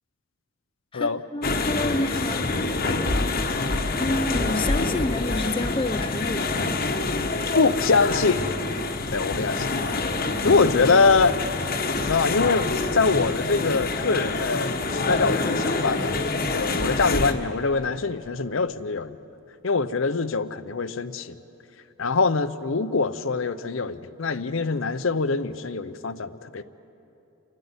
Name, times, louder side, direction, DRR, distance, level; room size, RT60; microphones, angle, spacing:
voice 1, 0.9-2.5 4.0-6.7, left 2 dB, 25° left, 8 dB, 0.5 m, -29 dB
sound 1, 1.4-17.3, left 3 dB, 40° left, 1.1 m, -26 dB
voice 2, 2.8-3.3 7.5-8.5 9.1-9.8 10.4-11.4 12.0-16.2 16.5-19.2 19.6-21.4 22.0-26.6, left 4 dB, 60° left, 13 dB, 0.7 m, -24 dB
29.0 x 12.0 x 9.7 m, 2.8 s
head